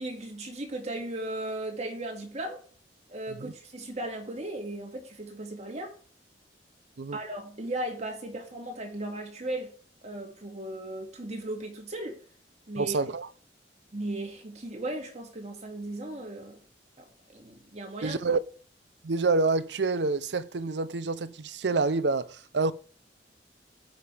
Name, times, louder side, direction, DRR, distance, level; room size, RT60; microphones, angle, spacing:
voice 1, 0.0-2.6 3.1-6.0 7.1-9.7 10.0-12.2 12.7-13.0 13.9-16.6 17.0-17.1 17.3-18.2, right 1 dB, 40° right, 2.1 m, -36 dB
voice 2, 12.8-13.3 18.0-18.4 19.0-22.7, right 3 dB, 80° right, 0.7 m, -27 dB
17.0 x 5.7 x 3.4 m
head